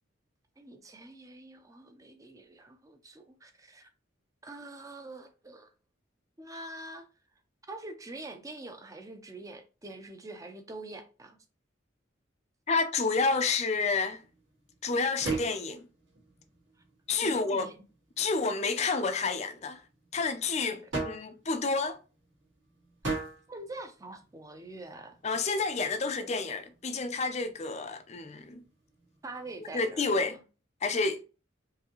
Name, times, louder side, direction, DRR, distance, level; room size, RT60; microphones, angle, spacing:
voice 1, 0.6-3.9 4.4-5.7 6.4-7.1 7.7-11.4 17.2-17.7 23.5-25.2 29.2-30.4, right 2 dB, 15° right, 0.6 m, -45 dB
voice 2, 12.7-14.2 14.8-15.9 17.1-17.7 18.2-19.8 20.1-22.0 25.2-28.6 29.7-30.4 30.8-31.2, left 4 dB, 35° left, 0.5 m, -29 dB
sound 1, 13.2-30.1, right 3 dB, 65° right, 1.7 m, -43 dB
4.7 x 2.7 x 3.0 m
head